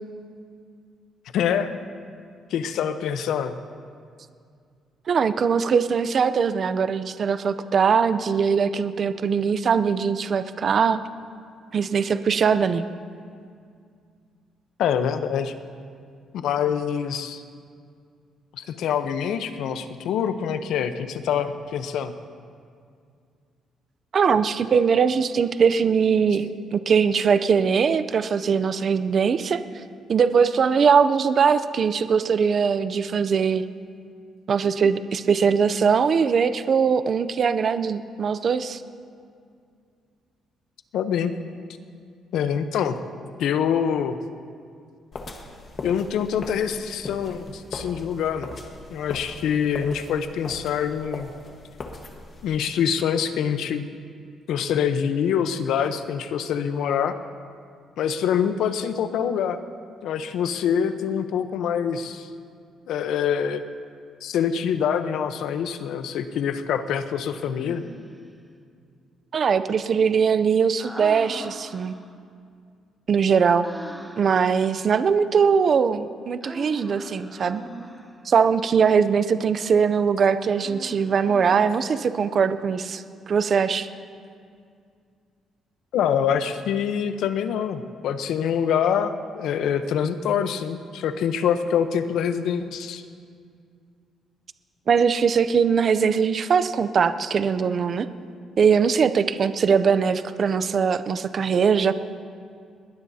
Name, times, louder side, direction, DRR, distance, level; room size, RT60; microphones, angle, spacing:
voice 1, 1.3-1.7 2.5-3.6 14.8-15.5 16.3-17.4 18.6-22.1 40.9-41.3 42.3-43.0 43.4-44.2 45.8-48.5 48.9-51.3 52.4-53.8 54.5-57.1 58.0-59.6 60.0-62.3 62.9-63.6 64.2-67.8 85.9-93.0, left 8 dB, 80° left, 10 dB, 0.8 m, -25 dB
voice 2, 5.1-11.0 11.7-12.8 24.1-29.6 30.1-33.7 34.5-38.8 69.3-71.9 73.1-73.7 74.2-77.6 78.2-83.9 94.9-98.1 98.6-101.9, right 6 dB, 40° right, 12 dB, 0.5 m, -21 dB
sound 1, 45.1-52.6, left 3 dB, 35° left, 1.3 m, -39 dB
Human voice, 67.4-68.3 70.8-72.1 73.6-74.4 76.4-78.2 80.5-82.1, right 1 dB, 5° right, 1.0 m, -41 dB
21.0 x 19.0 x 2.8 m, 2.3 s
cardioid pair, 165°, 0 cm